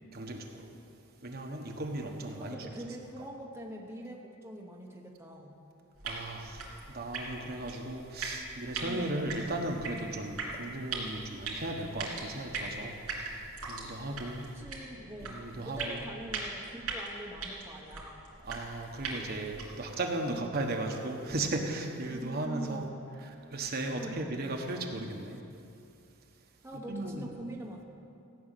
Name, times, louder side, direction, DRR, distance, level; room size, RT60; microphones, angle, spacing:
voice 1, 0.1-0.7 1.2-2.6 6.0-14.5 15.2-16.0 18.4-22.9 23.2-25.4 26.7-27.3, right 2 dB, 45° right, 2 dB, 1.2 m, -36 dB
voice 2, 2.4-5.5 8.8-9.3 14.5-18.2 20.3-20.5 22.1-22.9 23.9-24.9 26.6-27.8, right 1 dB, 10° right, -1 dB, 1.0 m, -43 dB
sound 1, 5.9-19.9, right 3 dB, 85° right, 3.2 m, -41 dB
15.5 x 6.3 x 9.1 m, 2.6 s
head